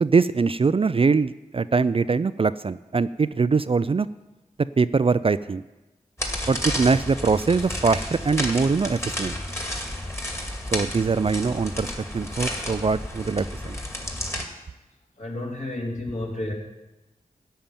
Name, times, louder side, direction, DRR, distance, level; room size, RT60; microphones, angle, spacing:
voice 1, 0.0-4.1 4.8-5.6 6.5-9.4 10.7-11.9 12.1-13.8, right 4 dB, 40° right, 14 dB, 0.4 m, -22 dB
sound 1, 6.2-14.4, left 1 dB, 15° left, 2.2 m, -31 dB
voice 2, 15.2-16.5, left 1 dB, 50° left, -1 dB, 3.0 m, -31 dB
13.0 x 5.6 x 8.9 m, 1.1 s
cardioid pair, 55°, 15 cm